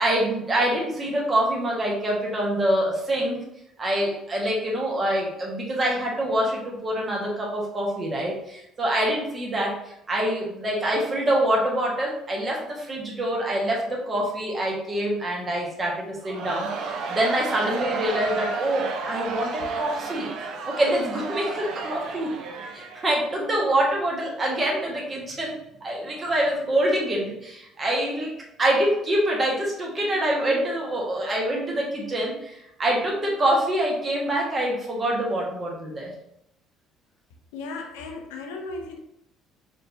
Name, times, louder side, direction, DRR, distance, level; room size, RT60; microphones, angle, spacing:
voice 1, 0.0-3.4 3.8-20.3 20.7-22.3 22.7-25.5 25.8-28.3 28.6-36.1, right 1 dB, 35° right, -2 dB, 1.4 m, -25 dB
Crowd, 16.2-23.5, right 4 dB, 60° right, 0.5 m, -32 dB
voice 2, 37.5-39.0, left 3 dB, 75° left, 4 dB, 0.5 m, -35 dB
4.0 x 3.5 x 2.7 m, 0.82 s
hypercardioid pair, 55°, 0 cm